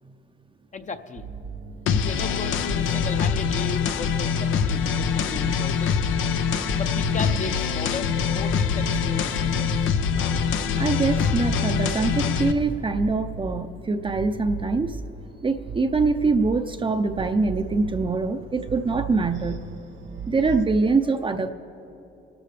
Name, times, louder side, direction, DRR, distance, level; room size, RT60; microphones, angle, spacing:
voice 1, 0.7-1.2 2.0-6.0 6.8-9.9, left 4 dB, 40° left, 8 dB, 0.8 m, -35 dB
sound 1, 1.2-20.7, right 4 dB, 70° right, 0.8 m, -37 dB
sound 2, 1.9-12.5, left 7 dB, 80° left, 0.7 m, -24 dB
voice 2, 10.8-15.0 15.4-19.7 20.3-21.5, right 3 dB, 25° right, 8 dB, 0.6 m, -24 dB
26.0 x 13.0 x 3.4 m, 2.9 s
cardioid pair, 90°, 20 cm